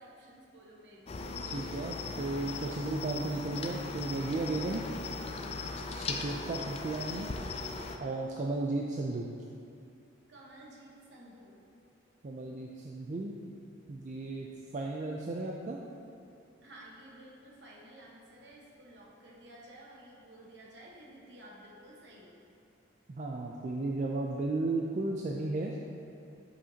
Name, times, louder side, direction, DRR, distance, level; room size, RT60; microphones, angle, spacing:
voice 1, 0.0-1.4 6.0-6.3 10.3-11.6 14.8-14.9 16.6-22.4, right 1 dB, 60° right, -3 dB, 1.2 m, -53 dB
Cricket, 1.1-8.0, left 3 dB, 30° left, 0.3 m, -38 dB
voice 2, 1.5-4.8 5.9-7.3 8.0-9.3 12.2-13.3 13.9-14.5 14.7-15.8 23.1-25.8, right 2 dB, 40° right, -1 dB, 0.4 m, -34 dB
7.8 x 5.6 x 2.8 m, 2.6 s
head